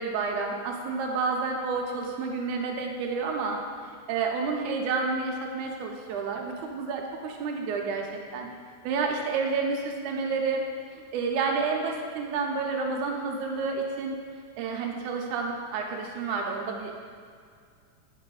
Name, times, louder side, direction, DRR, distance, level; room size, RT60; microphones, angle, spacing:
voice 1, 0.0-3.6 4.1-8.5 8.8-10.6 10.9-14.2 14.6-16.9, right 4 dB, 90° right, 1 dB, 2.1 m, -30 dB
8.9 x 4.7 x 3.9 m, 2.1 s
omnidirectional pair, 3.5 m